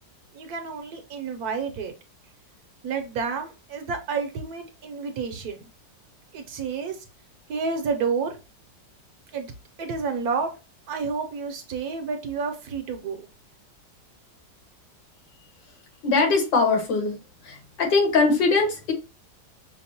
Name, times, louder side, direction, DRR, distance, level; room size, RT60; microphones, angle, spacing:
voice 1, 0.3-1.9 2.8-5.7 6.3-7.0 7.5-8.4 9.3-9.5 9.8-10.5 10.9-13.3, right 5 dB, 65° right, 1.0 m, -30 dB
voice 2, 16.0-17.2 17.4-18.9, left 3 dB, 85° left, 1.9 m, -21 dB
5.9 x 2.1 x 2.7 m
omnidirectional pair, 1.9 m